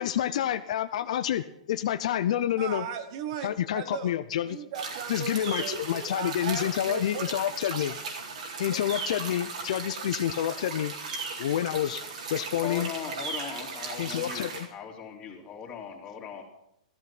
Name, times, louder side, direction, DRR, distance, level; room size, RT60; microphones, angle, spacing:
voice 1, 0.0-2.9 3.4-4.6 5.1-8.0 8.6-10.9 11.4-12.0 12.3-12.9 14.0-14.7, left 11 dB, 60° left, 12 dB, 0.6 m, -28 dB
voice 2, 2.6-4.1 4.4-7.3, right 7 dB, 45° right, 10 dB, 1.3 m, -37 dB
sound 1, 4.7-14.7, right 4 dB, 70° right, 3.9 m, -37 dB
voice 3, 12.6-16.4, left 7 dB, 20° left, 0 dB, 3.3 m, -39 dB
14.0 x 13.0 x 6.0 m, 0.77 s
hypercardioid pair, 140°, 4 cm